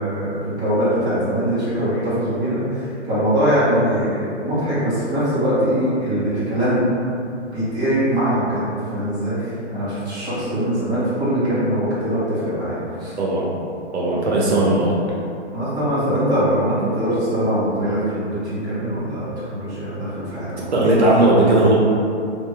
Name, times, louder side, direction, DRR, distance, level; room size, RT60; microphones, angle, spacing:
voice 1, 0.0-6.8 7.5-13.1 15.5-20.7, equal, 10° right, -14 dB, 1.2 m, -22 dB
voice 2, 13.2-13.5 13.9-15.0 20.7-21.8, right 2 dB, 70° right, -4 dB, 0.9 m, -17 dB
3.4 x 2.5 x 3.4 m, 2.6 s
hypercardioid pair, 155°, 35 cm